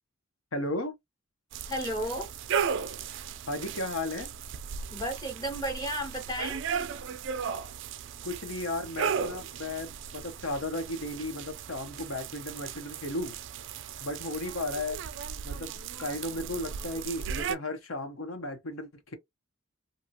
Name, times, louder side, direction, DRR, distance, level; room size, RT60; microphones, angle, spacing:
voice 1, 0.5-0.9 3.5-4.3 8.2-13.3 14.0-15.0 15.4-19.2, left 2 dB, 85° left, 1.0 m, -35 dB
sound 1, 1.5-17.6, right 7 dB, 65° right, 0.4 m, -36 dB
voice 2, 1.7-2.3 4.9-6.6, equal, 20° left, 1.1 m, -33 dB
2.8 x 2.4 x 2.7 m
head